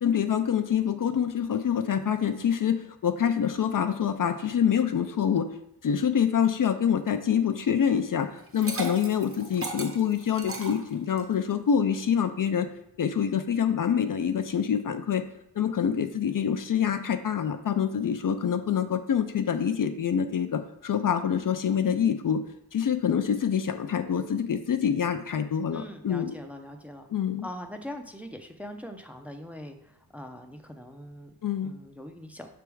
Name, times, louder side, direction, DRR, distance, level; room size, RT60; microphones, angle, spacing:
voice 1, 0.0-5.5 5.8-12.7 13.0-15.2 15.6-22.4 22.7-26.3 27.1-27.5 31.4-31.7, left 8 dB, 55° left, 8 dB, 0.5 m, -26 dB
Liquid, 8.4-11.4, right 3 dB, 35° right, 1.0 m, -37 dB
voice 2, 25.7-27.1 27.4-31.3 31.6-32.5, equal, 5° right, 5 dB, 0.5 m, -42 dB
6.0 x 3.4 x 4.6 m, 0.78 s
wide cardioid pair, 95°, 39 cm